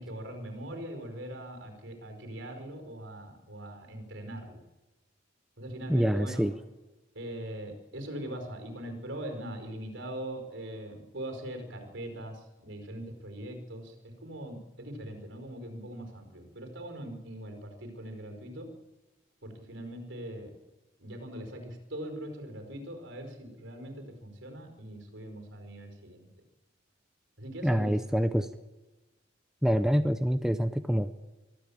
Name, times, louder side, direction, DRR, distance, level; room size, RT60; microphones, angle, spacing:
voice 1, 0.0-4.6 5.6-6.5 7.1-18.7 19.4-20.6 21.0-26.3 27.4-28.0, right 1 dB, 65° right, 5 dB, 4.8 m, -41 dB
voice 2, 5.9-6.5 27.6-28.5 29.6-31.3, equal, 5° right, 9 dB, 0.6 m, -26 dB
23.5 x 13.5 x 8.6 m, 1.1 s
head